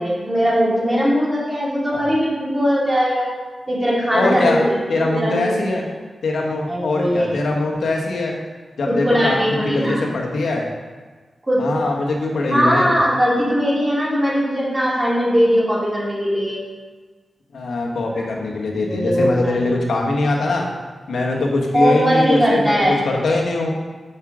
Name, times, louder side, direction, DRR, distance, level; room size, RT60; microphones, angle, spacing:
voice 1, 0.0-3.3 3.7-5.8 6.7-7.4 8.9-10.1 11.4-11.7 12.5-16.6 18.8-19.6 21.7-23.1, equal, 20° right, -6 dB, 2.6 m, -19 dB
voice 2, 4.1-4.6 4.9-5.8 6.2-8.3 8.8-9.4 9.6-10.6 11.6-12.9 17.5-20.7 21.1-23.7, left 2 dB, 80° left, -1 dB, 1.4 m, -22 dB
7.2 x 5.5 x 4.9 m, 1.4 s
cardioid pair, 55°, 0 cm